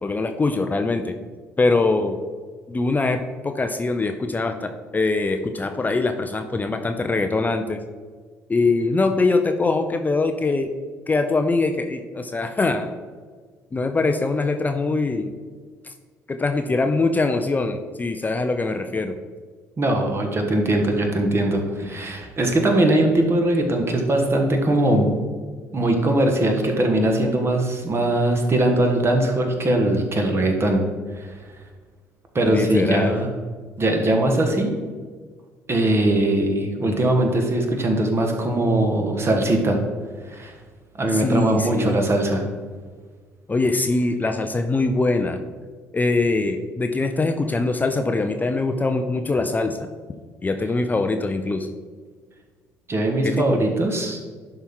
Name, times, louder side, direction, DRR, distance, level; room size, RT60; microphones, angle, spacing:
voice 1, 0.0-1.1 1.6-2.2 2.7-7.8 8.5-10.7 11.1-12.9 13.7-15.4 16.3-19.2 32.5-33.1 41.1-42.0 43.5-45.4 45.9-49.9 50.4-51.7 53.2-53.6, left 3 dB, 20° left, 6 dB, 0.6 m, -23 dB
voice 2, 19.8-25.1 25.7-30.8 31.2-31.3 32.3-33.3 33.8-34.8 35.7-39.8 40.3-40.5 41.0-42.4 52.9-54.2, right 1 dB, 30° right, 3 dB, 1.6 m, -21 dB
11.0 x 4.5 x 3.8 m, 1.5 s
figure-of-eight pair, 50°, 8 cm